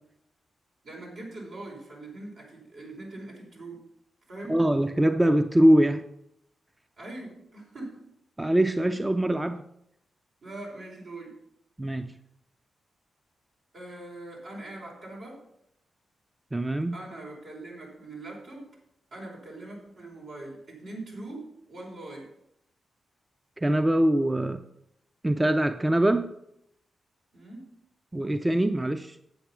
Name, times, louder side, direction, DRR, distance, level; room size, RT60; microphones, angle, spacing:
voice 1, 0.8-3.8 4.3-4.6 7.0-8.0 8.9-9.0 10.4-11.4 13.7-15.4 16.9-18.7 19.1-22.3 27.3-27.7, right 2 dB, 75° right, -3 dB, 4.8 m, -42 dB
voice 2, 4.5-6.0 8.4-9.6 11.8-12.1 16.5-17.0 23.6-24.6 25.2-26.3 28.1-29.2, right 1 dB, 15° right, 9 dB, 0.5 m, -23 dB
8.2 x 8.0 x 6.0 m, 0.78 s
cardioid pair, 65°, 0 cm